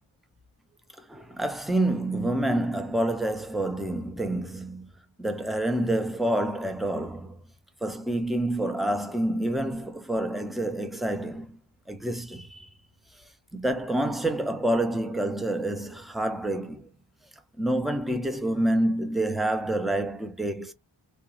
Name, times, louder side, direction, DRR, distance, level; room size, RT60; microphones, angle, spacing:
voice 1, 1.0-4.9 5.2-7.4 7.8-11.6 11.9-12.7 13.5-16.9 17.6-20.7, right 1 dB, ahead, 0.4 m, -28 dB
2.4 x 2.3 x 2.8 m
wide cardioid pair, 65°, 48 cm